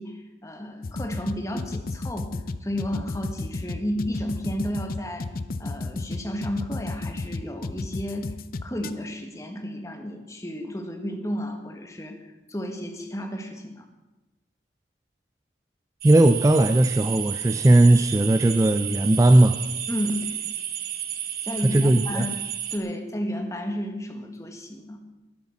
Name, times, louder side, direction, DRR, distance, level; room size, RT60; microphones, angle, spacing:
voice 1, 0.0-2.3 2.6-5.3 5.6-8.3 8.6-13.9 19.9-20.5 21.4-22.4 22.7-25.0, equal, 15° left, 5 dB, 1.5 m, -32 dB
sound 1, 0.8-8.9, left 2 dB, 50° left, 0.6 m, -31 dB
voice 2, 16.0-19.6 21.7-22.3, right 1 dB, 15° right, 9 dB, 0.4 m, -18 dB
sound 2, 16.0-22.8, right 10 dB, 50° right, 1.1 m, -32 dB
12.0 x 11.0 x 7.2 m, 1.1 s
head